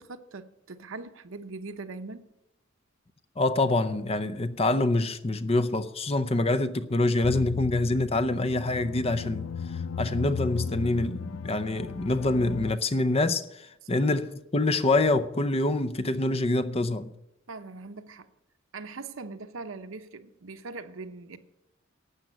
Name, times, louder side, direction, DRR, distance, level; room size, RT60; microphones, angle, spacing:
voice 1, 0.0-2.3 13.9-14.0 17.5-18.3 18.7-21.4, right 3 dB, 75° right, 0.9 m, -41 dB
voice 2, 3.4-9.5 10.0-17.1, left 2 dB, 30° left, 0.6 m, -26 dB
sound 1, 7.2-12.7, left 6 dB, 75° left, 0.4 m, -35 dB
12.0 x 7.5 x 8.0 m
head